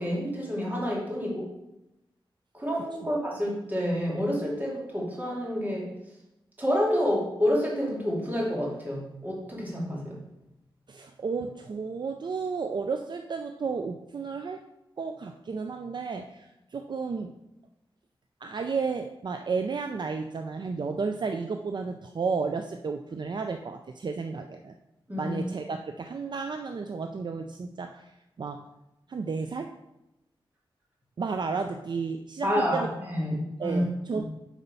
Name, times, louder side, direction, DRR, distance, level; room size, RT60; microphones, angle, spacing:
voice 1, 0.0-1.5 2.5-5.9 6.6-10.2 25.1-25.4 32.4-33.8 34.1-34.3, equal, 20° right, -4 dB, 2.7 m, -29 dB
voice 2, 10.9-14.7 15.0-17.4 18.4-24.7 25.2-28.7 29.1-29.8 31.2-32.9 33.3-34.2, right 4 dB, 55° right, 6 dB, 0.5 m, -32 dB
8.2 x 4.4 x 5.5 m, 0.91 s
wide cardioid pair, 115°, 9 cm